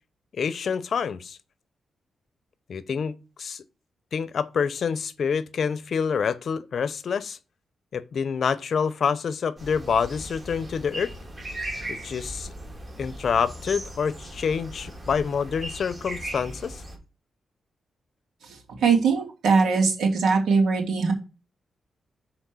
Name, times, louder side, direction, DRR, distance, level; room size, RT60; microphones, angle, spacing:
voice 1, 0.3-1.4 2.7-3.6 4.1-7.4 7.9-11.1 11.9-12.5 13.0-16.8, left 6 dB, 60° left, 0.7 m, -27 dB
sound 1, 9.6-17.0, right 1 dB, 25° right, 3.0 m, -38 dB
voice 2, 18.4-21.1, right 5 dB, 85° right, 2.8 m, -21 dB
6.6 x 4.3 x 6.1 m
cardioid pair, 100°, 0 cm